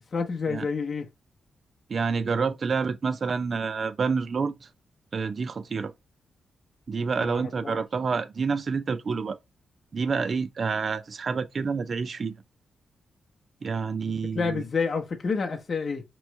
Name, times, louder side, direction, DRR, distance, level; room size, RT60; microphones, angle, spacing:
voice 1, 0.1-1.1 7.2-7.8 14.3-16.0, left 5 dB, 45° left, 0.8 m, -29 dB
voice 2, 1.9-4.7 5.1-5.9 6.9-9.4 9.9-12.3 13.6-14.6, right 5 dB, 45° right, 0.4 m, -28 dB
4.4 x 3.0 x 3.1 m
cardioid pair, 120°, 0 cm